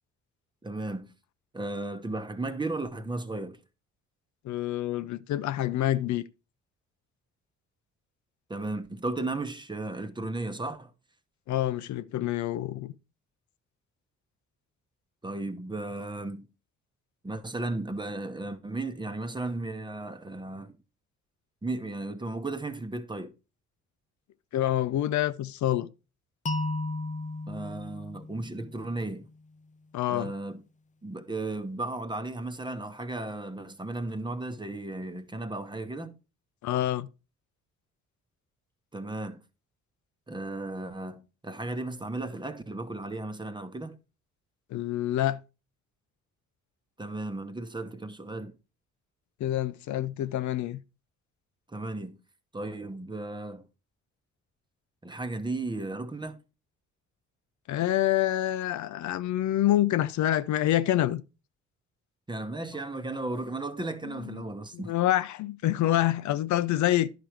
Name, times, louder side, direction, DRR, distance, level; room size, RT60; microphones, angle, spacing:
voice 1, 0.6-1.1 1.5-3.6 8.5-10.9 15.2-16.5 17.2-20.7 21.6-23.3 27.5-29.3 30.1-30.6 31.0-36.2 38.9-39.4 40.3-44.0 47.0-48.5 51.7-52.2 52.5-53.7 55.0-56.4 62.3-64.9, right 2 dB, 15° right, 0.9 m, -35 dB
voice 2, 4.4-6.2 11.5-12.9 24.5-25.9 29.9-30.3 36.6-37.1 44.7-45.4 49.4-50.8 57.7-61.2 64.0-64.4 64.7-67.1, left 13 dB, 70° left, 0.5 m, -27 dB
sound 1, 26.5-29.4, left 2 dB, 25° left, 0.6 m, -35 dB
10.5 x 5.1 x 4.6 m
cardioid pair, 90°, 30 cm